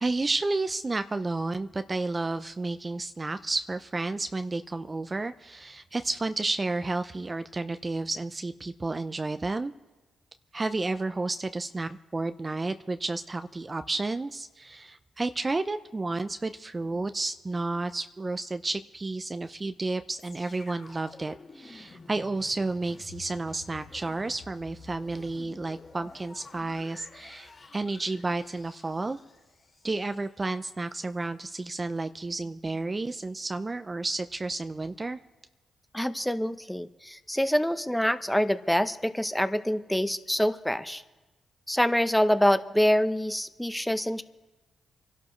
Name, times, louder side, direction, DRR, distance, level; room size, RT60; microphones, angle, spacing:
voice 1, 0.0-9.7 10.5-29.2 29.8-35.2, right 3 dB, 30° right, 10 dB, 0.6 m, -31 dB
sound 1, 20.2-30.3 30.9-31.0, left 3 dB, 50° left, 3.3 m, -50 dB
voice 2, 35.9-41.0 41.7-44.2, equal, 5° left, 11 dB, 0.9 m, -26 dB
26.5 x 11.5 x 3.2 m, 1.1 s
hypercardioid pair, 45°, 0 cm